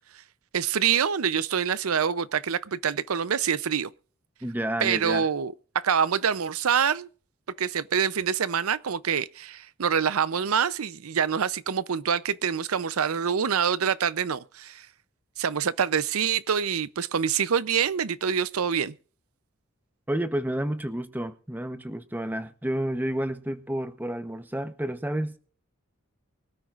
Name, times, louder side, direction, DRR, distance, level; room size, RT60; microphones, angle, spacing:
voice 1, 0.5-3.9 4.8-7.1 7.6-14.9 15.4-18.9, right 7 dB, 90° right, 0.6 m, -26 dB
voice 2, 4.4-5.3 20.1-25.4, right 1 dB, 10° right, 0.8 m, -30 dB
24.5 x 13.0 x 2.5 m
head